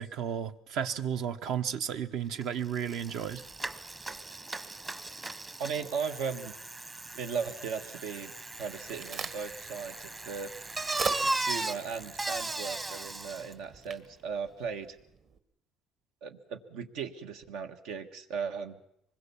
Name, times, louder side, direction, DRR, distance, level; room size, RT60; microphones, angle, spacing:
voice 1, 0.0-3.4, right 8 dB, 70° right, 1.1 m, -33 dB
Bicycle, 2.4-2.5 2.7-13.5, right 2 dB, 20° right, 1.0 m, -37 dB
voice 2, 5.6-6.5 7.1-8.3 8.6-10.5 11.1-15.0 16.2-18.8, right 6 dB, 85° right, 1.6 m, -37 dB
Crack, 8.5-15.4, right 5 dB, 45° right, 1.5 m, -43 dB
25.0 x 21.0 x 7.1 m
cardioid pair, 130°, 0 cm